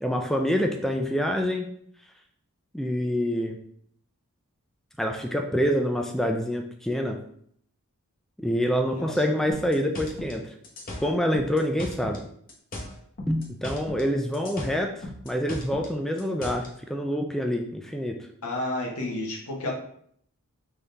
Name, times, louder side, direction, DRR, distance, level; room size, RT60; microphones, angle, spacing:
voice 1, 0.0-1.8 2.7-3.6 5.0-7.2 8.4-10.4 11.0-12.2 13.3-14.9 15.2-18.2, equal, ahead, 3 dB, 0.3 m, -26 dB
voice 2, 8.9-9.3 18.4-19.7, left 1 dB, 80° left, -1 dB, 1.2 m, -31 dB
sound 1, 9.5-12.2 12.5-14.1 14.3-16.7, left 1 dB, 40° left, 0.9 m, -37 dB
4.1 x 3.7 x 3.3 m, 0.64 s
head